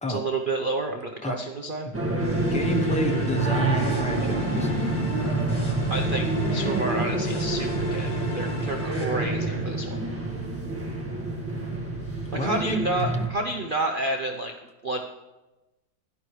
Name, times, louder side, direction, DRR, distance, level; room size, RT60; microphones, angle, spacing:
voice 1, 0.1-1.9 4.8-4.9 5.9-10.0 12.3-14.5 14.8-15.0, right 2 dB, 50° right, 4 dB, 0.6 m, -30 dB
sound 1, 1.9-13.3, right 2 dB, 10° right, 1.5 m, -27 dB
sound 2, 2.2-9.0, left 3 dB, 55° left, 2.6 m, -37 dB
voice 2, 2.5-4.7 12.4-12.8, left 1 dB, 10° left, 4 dB, 0.3 m, -29 dB
16.5 x 11.5 x 3.2 m, 1.1 s
omnidirectional pair, 2.0 m